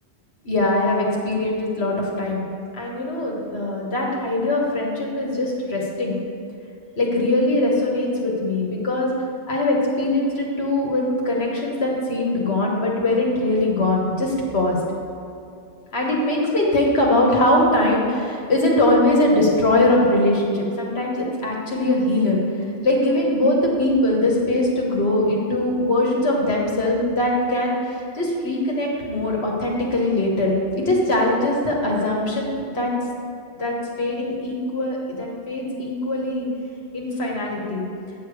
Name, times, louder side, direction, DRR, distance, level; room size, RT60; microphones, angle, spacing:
voice 1, 0.4-2.4 2.7-6.2 7.0-9.1 9.5-14.8 15.9-22.4 22.8-32.9 33.6-36.5 36.9-37.8, left 1 dB, 70° left, -2 dB, 1.4 m, -21 dB
9.0 x 6.7 x 4.7 m, 2.6 s
omnidirectional pair, 1.1 m